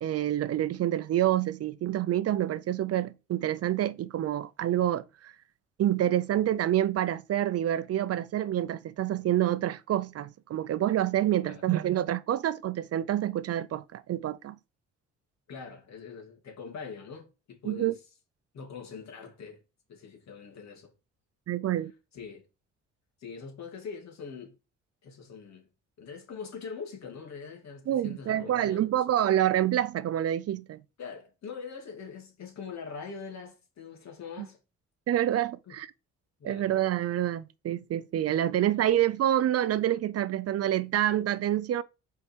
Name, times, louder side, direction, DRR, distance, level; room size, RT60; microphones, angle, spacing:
voice 1, 0.0-5.3 5.8-14.6 17.7-17.9 21.5-21.9 27.9-30.8 34.4-34.5 35.1-35.9 36.4-41.8, right 12 dB, 55° right, 0.5 m, -27 dB
voice 2, 15.5-17.9 18.5-19.6 19.9-20.9 22.1-22.5 23.2-24.5 25.0-25.7 26.0-29.0 31.0-34.6 35.7-35.8 36.4-36.7, left 5 dB, 65° left, 2.6 m, -43 dB
5.5 x 4.7 x 4.5 m
cardioid pair, 90°, 30 cm